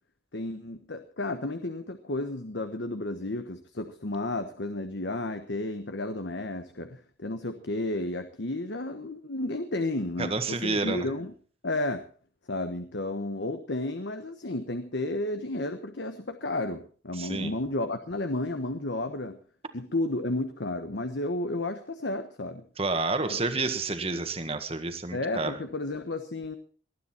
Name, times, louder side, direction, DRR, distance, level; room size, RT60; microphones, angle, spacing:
voice 1, 0.3-11.3 11.6-12.0 12.5-19.4 19.7-22.6 23.3-23.4 25.1-26.6, left 2 dB, 75° left, 8 dB, 1.2 m, -32 dB
voice 2, 10.2-11.1 17.2-17.5 22.8-25.6, right 3 dB, 35° right, 8 dB, 1.7 m, -29 dB
20.0 x 12.5 x 4.4 m, 0.43 s
head